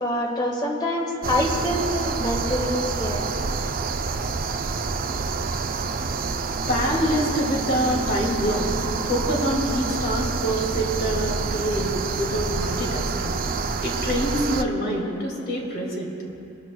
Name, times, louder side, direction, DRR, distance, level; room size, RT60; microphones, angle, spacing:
voice 1, 0.0-3.2, left 1 dB, 20° left, 0 dB, 1.6 m, -26 dB
sound 1, 1.2-14.6, right 4 dB, 45° right, 0.4 m, -27 dB
voice 2, 6.7-13.3 13.8-16.2, equal, 50° left, -1 dB, 2.3 m, -26 dB
25.0 x 12.0 x 2.3 m, 2.9 s
head